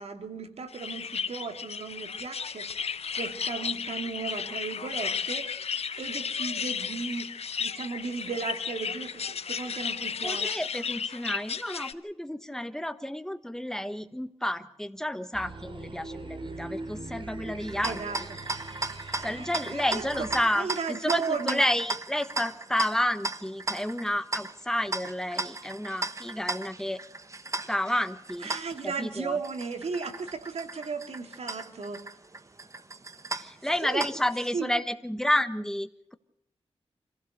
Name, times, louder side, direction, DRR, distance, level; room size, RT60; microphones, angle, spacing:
voice 1, 0.0-5.7 6.0-10.6 17.8-18.4 19.3-20.3 20.6-21.6 28.4-32.0 33.8-34.1 34.5-34.7, right 4 dB, 75° right, 7 dB, 2.4 m, -35 dB
sound 1, 0.7-11.9, left 6 dB, 70° left, 0.9 m, -34 dB
voice 2, 10.2-18.3 19.2-27.0 27.7-28.5 28.8-29.4 33.3-36.1, left 1 dB, 5° left, 10 dB, 1.3 m, -30 dB
sound 2, 15.3-20.4, right 2 dB, 50° right, 3.0 m, -41 dB
sound 3, 17.6-34.5, right 2 dB, 30° right, 1.2 m, -37 dB
26.0 x 16.0 x 6.6 m, 0.75 s
wide cardioid pair, 90°, 11 cm